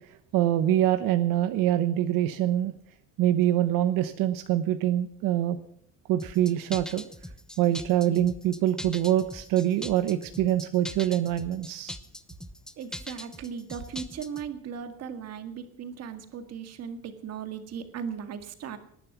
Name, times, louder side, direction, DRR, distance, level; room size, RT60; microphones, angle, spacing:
voice 1, 0.1-2.7 3.2-5.6 6.1-7.0 7.6-12.0, right 12 dB, 80° right, 9 dB, 1.0 m, -25 dB
sound 1, 6.2-14.5, left 1 dB, ahead, 0.6 m, -41 dB
voice 2, 12.8-18.8, right 7 dB, 50° right, 8 dB, 1.9 m, -37 dB
19.0 x 11.0 x 6.0 m, 0.67 s
cardioid pair, 165°, 33 cm